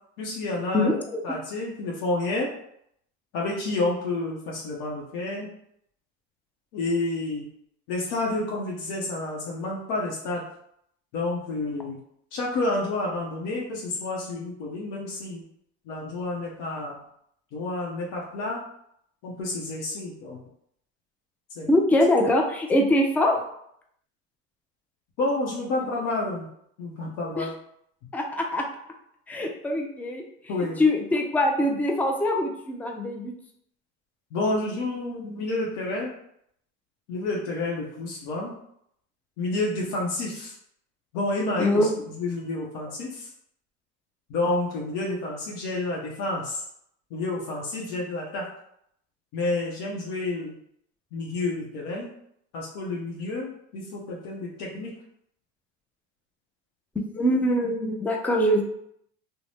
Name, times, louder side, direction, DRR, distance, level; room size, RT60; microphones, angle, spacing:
voice 1, 0.2-0.9 1.2-2.5 3.3-5.5 6.7-7.5 7.9-10.4 11.1-12.0 12.3-15.4 15.9-17.0 17.5-18.6 19.2-20.4 21.6-21.7 25.2-26.5 26.8-27.5 30.5-30.8 34.3-36.1 37.1-38.6 39.4-40.5 41.1-41.9 42.2-43.3 44.3-46.6 47.1-48.4 49.3-50.5 51.1-52.1 52.5-54.9, left 2 dB, 70° left, -3 dB, 0.7 m, -29 dB
voice 2, 0.7-1.2 21.7-23.4 25.7-25.9 27.4-27.5 28.1-28.7 29.3-30.2 30.8-33.3 41.6-42.0 57.0-58.6, left 1 dB, 5° left, 2 dB, 0.3 m, -23 dB
2.6 x 2.1 x 3.2 m, 0.72 s
hypercardioid pair, 80°, 34 cm